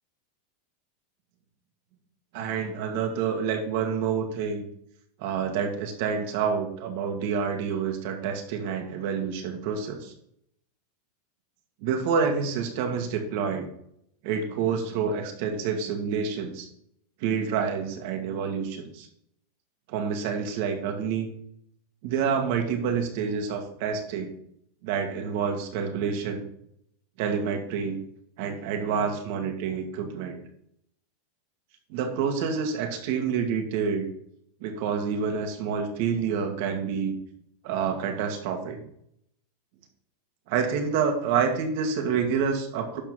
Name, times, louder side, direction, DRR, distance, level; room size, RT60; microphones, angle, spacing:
voice 1, 2.3-4.7 5.2-10.1 11.8-13.7 14.2-16.7 17.2-19.1 19.9-21.3 22.0-24.3 24.8-26.4 27.2-28.0 28.4-30.4 31.9-34.1 34.6-37.1 37.6-38.9 40.5-43.0, right 6 dB, 55° right, 3 dB, 2.3 m, -28 dB
12.0 x 4.5 x 5.9 m, 0.71 s
supercardioid pair, 155°, 0 cm